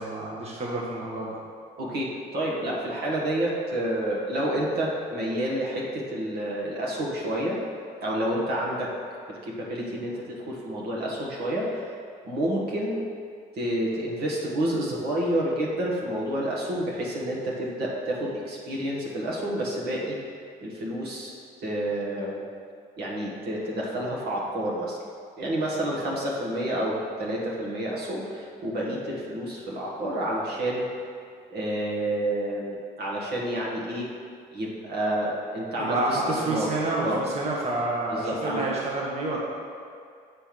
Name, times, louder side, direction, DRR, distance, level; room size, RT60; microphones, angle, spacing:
voice 1, 0.0-1.4 35.8-39.4, right 2 dB, 40° right, -4 dB, 1.2 m, -28 dB
voice 2, 1.8-7.6 8.0-8.9 9.3-12.0 12.2-13.0 13.6-20.3 20.6-21.3 21.6-22.4 23.0-25.0 25.4-30.9 31.5-34.1 34.5-36.7 37.0-37.2 38.1-38.6, right 1 dB, 70° right, -4 dB, 1.5 m, -29 dB
6.8 x 3.4 x 6.0 m, 2.3 s
cardioid pair, 85°, 17 cm